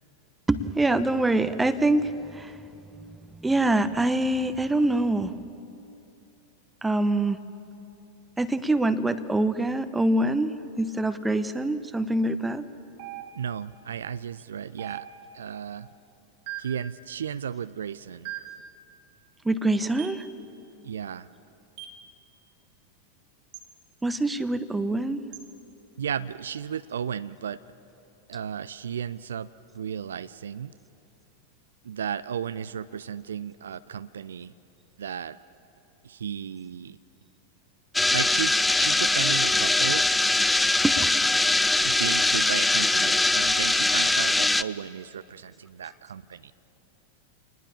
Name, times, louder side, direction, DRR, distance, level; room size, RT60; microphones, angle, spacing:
voice 1, 0.5-2.6 3.3-5.3 6.8-7.4 8.4-12.6 19.4-20.2 24.0-25.2 40.8-41.1 42.5-43.1, right 2 dB, 10° right, 13 dB, 1.0 m, -25 dB
sound 1, 13.0-13.7 14.8-15.5 16.5-16.9 18.2-18.7 20.0-20.3 21.8-22.1 23.5-23.7 25.3-25.5, right 12 dB, 45° right, 1.7 m, -40 dB
voice 2, 13.4-15.1 15.3-15.9 16.6-18.3 20.8-21.3 26.0-27.6 28.3-29.5 29.7-30.7 31.8-34.5 35.0-35.4 36.0-37.0 38.1-40.0 41.8-46.5, right 8 dB, 65° right, 15 dB, 0.4 m, -34 dB
sound 2, 37.9-44.6, left 2 dB, 5° left, 0.5 m, -22 dB
27.5 x 20.0 x 7.3 m, 2.8 s
figure-of-eight pair, 90°, 0 cm